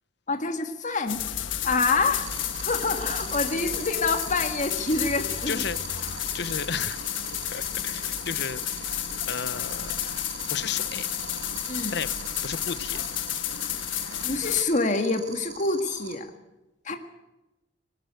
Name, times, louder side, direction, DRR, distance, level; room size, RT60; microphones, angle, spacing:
voice 1, 0.3-2.3 2.5-5.6 11.7-11.9 14.2-16.3 16.8-17.0, left 3 dB, 40° left, 6 dB, 1.7 m, -27 dB
sound 1, 1.1-14.6, left 11 dB, 90° left, 1.4 m, -32 dB
sound 2, 2.2-16.1, right 6 dB, 40° right, 5.7 m, -40 dB
voice 2, 5.5-6.1 6.3-7.0 7.5-9.0 9.3-10.0 10.5-11.1 11.9-12.1 12.4-13.0, left 6 dB, 60° left, 15 dB, 0.9 m, -33 dB
20.0 x 19.0 x 8.0 m, 1.0 s
head